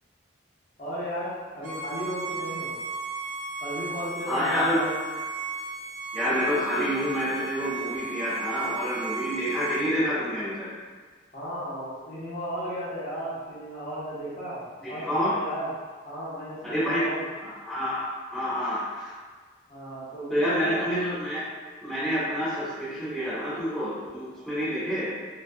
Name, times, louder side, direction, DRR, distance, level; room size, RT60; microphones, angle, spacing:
voice 1, 0.8-2.7 3.6-5.0 11.3-15.7 16.0-17.3 19.7-20.9, equal, 40° left, -10 dB, 0.9 m, -35 dB
Bowed string instrument, 1.6-9.9, right 3 dB, 70° right, 0.5 m, -35 dB
voice 2, 4.3-4.8 6.1-10.7 14.8-15.3 16.6-17.1 17.4-19.1 20.3-21.4 21.8-25.1, equal, ahead, -13 dB, 0.9 m, -28 dB
3.1 x 2.9 x 2.3 m, 1.5 s
head